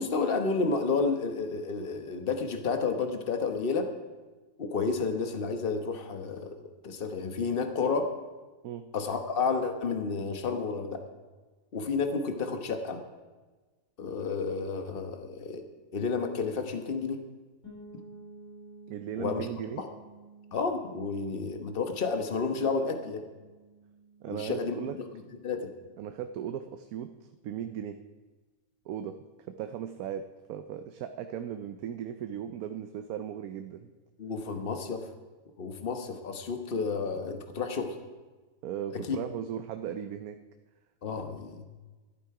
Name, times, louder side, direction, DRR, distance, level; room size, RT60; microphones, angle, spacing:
voice 1, 0.0-3.9 4.6-6.5 6.8-8.1 8.9-11.0 11.7-13.0 14.0-15.6 15.9-17.2 19.2-19.5 19.8-19.9 20.5-23.2 24.3-24.9 25.4-25.7 34.2-35.0 35.6-38.0 39.1-39.2 41.0-41.6, left 4 dB, 40° left, 6 dB, 1.3 m, -31 dB
sound 1, 17.6-27.3, right 3 dB, 85° left, 5.6 m, -53 dB
voice 2, 18.9-19.8 24.2-25.0 26.0-28.0 28.9-29.2 29.5-33.9 38.6-40.4, right 9 dB, 85° right, 8 dB, 1.1 m, -37 dB
12.5 x 11.0 x 4.8 m, 1.3 s
omnidirectional pair, 1.5 m